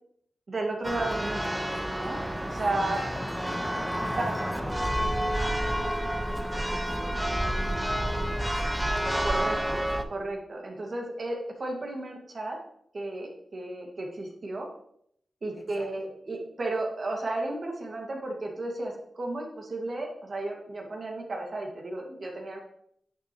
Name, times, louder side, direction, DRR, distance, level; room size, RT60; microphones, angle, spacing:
voice 1, 0.5-1.5 2.0-2.2 2.5-3.0 4.2-4.3 9.2-9.8 10.1-12.6 12.9-14.7 15.4-22.6, right 2 dB, 55° right, 0 dB, 2.0 m, -33 dB
Church bell, 0.8-10.0, equal, 5° right, 0.8 m, -29 dB
voice 2, 2.9-8.7 15.5-15.9, left 1 dB, 50° left, 0 dB, 2.2 m, -46 dB
9.7 x 6.5 x 3.1 m, 0.70 s
cardioid pair, 60°, 0 cm